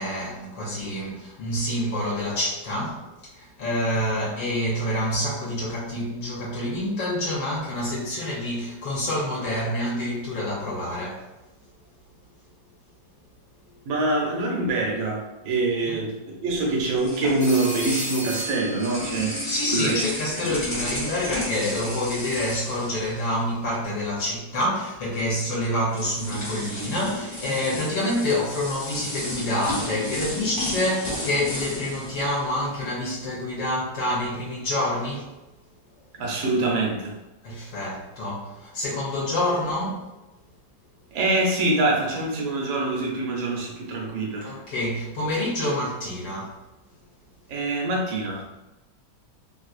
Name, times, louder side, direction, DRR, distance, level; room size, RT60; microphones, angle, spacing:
voice 1, 0.0-11.2 15.9-16.0 19.5-35.3 37.4-40.1 44.4-46.5, left 1 dB, 75° left, -5 dB, 1.5 m, -27 dB
voice 2, 13.9-20.1 20.4-20.5 36.2-37.2 41.1-44.6 47.5-48.4, right 2 dB, 80° right, -1 dB, 1.6 m, -25 dB
sound 1, 16.5-23.7 24.0-24.2 25.3-25.4 25.9-33.1, left 1 dB, 50° left, 0.3 m, -33 dB
Telephone, 17.4-19.5, right 2 dB, 30° left, 0.7 m, -34 dB
3.7 x 2.7 x 2.5 m, 1.0 s
omnidirectional pair, 2.1 m